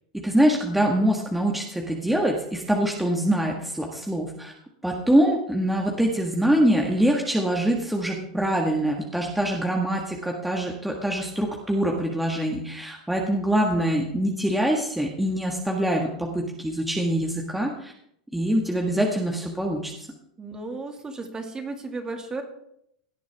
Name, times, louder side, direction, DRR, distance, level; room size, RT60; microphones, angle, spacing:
voice 1, 0.1-4.5 4.8-17.9 18.3-19.9, right 1 dB, 5° right, 0 dB, 1.6 m, -24 dB
voice 2, 20.4-22.4, right 3 dB, 20° right, 5 dB, 2.1 m, -34 dB
17.0 x 9.2 x 3.5 m, 0.74 s
hypercardioid pair, 105°, 4 cm